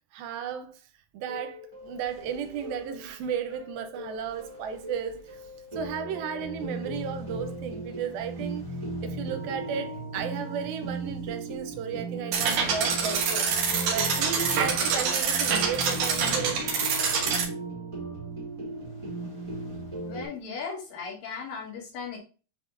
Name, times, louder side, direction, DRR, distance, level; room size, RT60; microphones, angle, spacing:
voice 1, 0.1-0.8 1.1-5.4 5.7-8.6 9.0-13.5 13.9-16.7, right 7 dB, 85° right, 2.6 m, -34 dB
sound 1, 1.3-20.3, right 2 dB, 15° right, 1.0 m, -37 dB
sound 2, 12.3-17.4, right 5 dB, 65° right, 2.4 m, -26 dB
voice 2, 20.1-22.2, left 5 dB, 75° left, 3.6 m, -37 dB
9.8 x 3.6 x 2.6 m
omnidirectional pair, 4.1 m